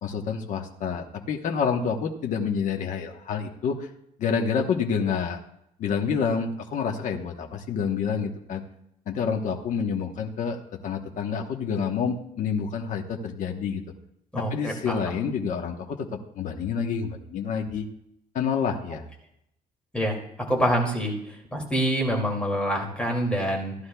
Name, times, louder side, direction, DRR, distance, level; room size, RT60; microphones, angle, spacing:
voice 1, 0.0-3.9 4.2-5.4 5.8-8.6 9.1-13.8 14.5-17.9 18.3-19.0, left 6 dB, 55° left, 3 dB, 1.1 m, -28 dB
voice 2, 14.3-15.2 19.9-20.2 20.5-23.7, equal, 5° left, -1 dB, 2.5 m, -26 dB
16.0 x 11.5 x 2.3 m, 0.77 s
cardioid pair, 140°, 16 cm